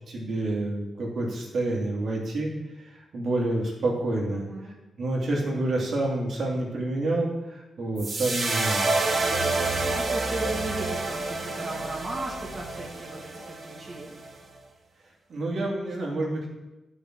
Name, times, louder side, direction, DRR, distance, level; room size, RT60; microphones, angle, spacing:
voice 1, 0.1-2.5 3.1-4.5 5.0-8.9 15.3-16.5, right 2 dB, 60° right, -2 dB, 2.8 m, -28 dB
voice 2, 4.3-4.8 9.9-14.2, right 2 dB, 25° right, -3 dB, 1.9 m, -36 dB
sound 1, 8.0-14.3, right 3 dB, 45° right, 2.0 m, -28 dB
10.5 x 6.0 x 6.2 m, 1.0 s
cardioid pair, 100°, 0 cm